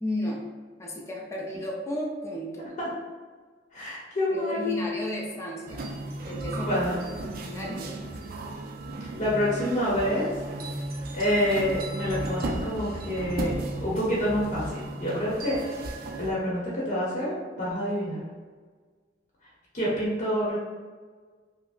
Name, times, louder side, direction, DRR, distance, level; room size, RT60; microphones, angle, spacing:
voice 1, 0.0-0.4 0.8-2.7 4.3-5.9 6.3-6.8 7.3-8.1, left 1 dB, 15° left, -2 dB, 0.4 m, -34 dB
voice 2, 2.6-2.9 3.7-4.8 6.6-7.0 9.2-10.3 11.1-15.6 16.2-18.2 19.7-20.6, equal, 45° left, -6 dB, 0.8 m, -27 dB
sound 1, 5.7-16.3, right 1 dB, 55° right, 0.4 m, -35 dB
5.1 x 2.0 x 2.4 m, 1.5 s
head